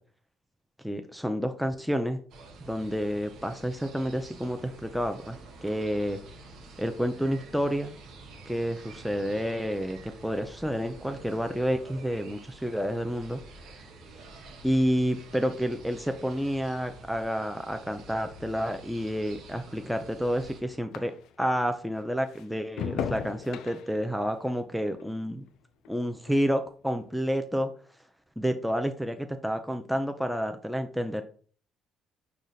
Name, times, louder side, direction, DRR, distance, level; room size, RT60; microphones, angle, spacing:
voice 1, 0.8-2.2 2.6-6.2 6.8-7.9 8.5-13.4 14.6-21.1 21.4-25.5 25.9-27.7 28.4-31.2, equal, ahead, 6 dB, 0.5 m, -29 dB
sound 1, 2.3-20.6, right 2 dB, 60° right, 0.8 m, -49 dB
sound 2, 14.8-21.6 21.9-26.5 26.8-27.3, left 8 dB, 65° left, 0.3 m, -42 dB
5.0 x 2.3 x 4.0 m, 0.43 s
hypercardioid pair, 50°, 0 cm